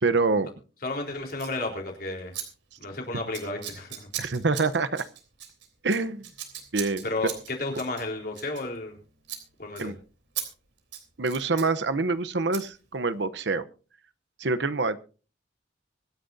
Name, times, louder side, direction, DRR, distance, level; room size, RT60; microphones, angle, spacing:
voice 1, 0.0-0.5 4.2-5.1 5.8-6.2 6.7-7.0 9.8-10.0 11.2-13.6 14.4-15.0, right 3 dB, 70° right, 12 dB, 0.9 m, -26 dB
voice 2, 0.8-2.3 2.8-4.1 7.0-8.9 9.6-9.9, left 2 dB, 55° left, 1 dB, 4.0 m, -32 dB
Scissors, 1.3-1.6 2.3-2.5 2.7-3.0 3.3-9.0 9.2-9.4 9.8-9.9 10.4-10.5 10.8-11.7 12.5-12.6, right 10 dB, 85° right, 3.4 m, -38 dB
24.5 x 10.0 x 2.7 m, 0.36 s
head